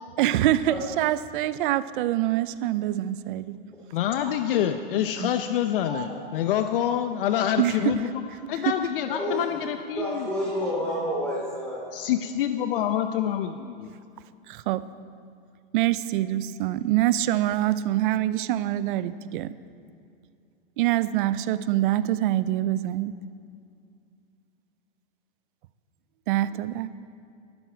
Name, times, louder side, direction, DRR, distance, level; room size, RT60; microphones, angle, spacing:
voice 1, 0.2-3.5 7.6-7.9 8.6-8.7 10.0-10.1 14.5-14.8 15.7-19.5 20.8-23.2 26.3-26.9, right 14 dB, 60° right, 15 dB, 0.6 m, -25 dB
voice 2, 3.9-10.3 11.9-13.9, left 10 dB, 65° left, 8 dB, 0.8 m, -27 dB
voice 3, 9.1-9.6 9.9-11.8, left 1 dB, 5° left, -7 dB, 3.2 m, -29 dB
19.5 x 12.5 x 4.6 m, 2.4 s
hypercardioid pair, 125°, 29 cm